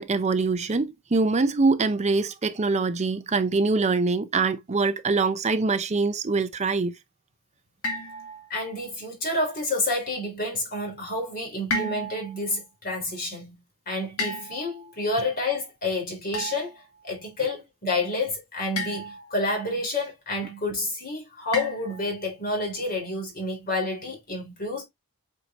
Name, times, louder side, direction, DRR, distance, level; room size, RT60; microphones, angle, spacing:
voice 1, 0.0-6.9, right 3 dB, 30° right, 0.6 m, -24 dB
sound 1, 7.8-8.8 11.7-12.4 14.2-14.9 16.3-16.8 18.8-19.4 21.5-22.2, left 1 dB, 70° left, 1.9 m, -32 dB
voice 2, 8.5-16.7 17.0-24.8, left 2 dB, 40° left, 3.7 m, -29 dB
8.0 x 4.8 x 2.5 m
head